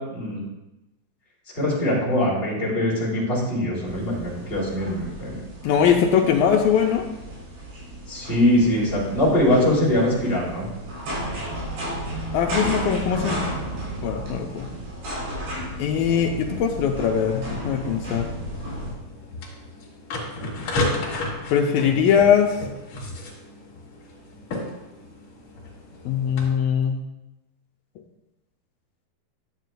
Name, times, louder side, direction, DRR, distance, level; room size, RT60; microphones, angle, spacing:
voice 1, 1.5-5.4 8.1-10.7, left 1 dB, 20° left, -6 dB, 2.3 m, -22 dB
sound 1, 3.8-18.9, right 1 dB, 90° right, 5.5 m, -33 dB
voice 2, 5.6-7.1 12.3-13.4 14.0-14.7 15.8-18.3 21.5-22.6 26.1-27.0, left 7 dB, 85° left, 3 dB, 2.1 m, -21 dB
sound 2, 18.5-26.4, left 2 dB, 50° left, 2.9 m, -32 dB
10.5 x 9.0 x 2.3 m, 0.98 s
omnidirectional pair, 4.6 m